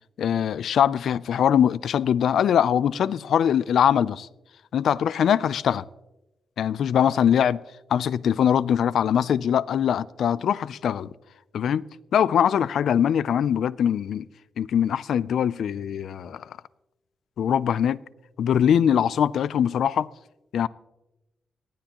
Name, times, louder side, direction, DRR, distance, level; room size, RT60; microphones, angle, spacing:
voice 1, 0.2-4.3 4.7-5.8 6.6-7.6 7.9-11.1 11.5-11.9 12.1-14.3 14.6-16.5 17.4-18.0 18.4-20.1 20.5-20.7, left 9 dB, 75° left, 0.3 m, -22 dB
19.0 x 11.5 x 3.0 m
wide cardioid pair, 140°, 0 cm